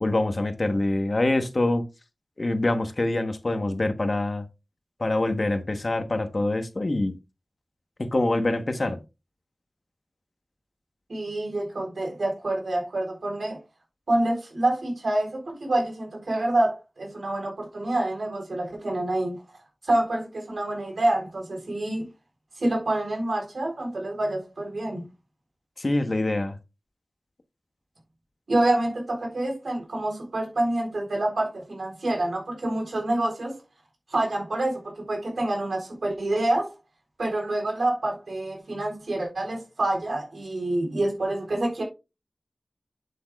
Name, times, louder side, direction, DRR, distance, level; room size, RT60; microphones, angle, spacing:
voice 1, 0.0-1.9 2.4-4.4 5.0-7.1 8.0-9.0 25.8-26.6, left 2 dB, 50° left, 1.2 m, -25 dB
voice 2, 11.1-13.6 14.1-19.4 19.8-22.1 22.6-25.0 28.5-33.6 34.1-36.7 37.2-41.8, right 1 dB, 85° right, 3.9 m, -27 dB
8.5 x 8.0 x 2.4 m
wide cardioid pair, 55°, 0 cm